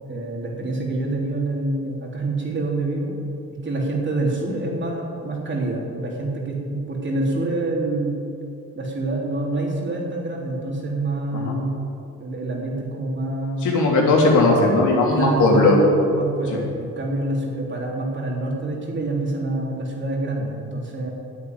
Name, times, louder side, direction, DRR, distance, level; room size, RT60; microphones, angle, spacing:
voice 1, 0.1-3.1 3.5-8.2 8.8-11.8 12.2-13.7 15.1-15.8 16.1-21.1, right 2 dB, 40° right, -2 dB, 3.4 m, -26 dB
voice 2, 13.6-15.8, left 2 dB, 75° left, -1 dB, 3.2 m, -17 dB
10.0 x 8.2 x 9.5 m, 2.6 s
cardioid pair, 90°, 30 cm